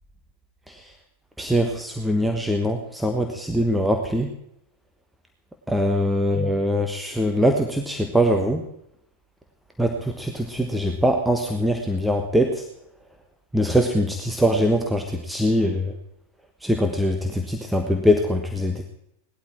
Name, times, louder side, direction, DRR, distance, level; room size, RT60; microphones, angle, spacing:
voice 1, 1.4-4.3 5.7-8.6 9.8-12.6 13.5-15.9 16.6-18.8, equal, 5° right, 4 dB, 1.2 m, -22 dB
18.5 x 12.0 x 4.4 m, 0.78 s
figure-of-eight pair, 90°, 0 cm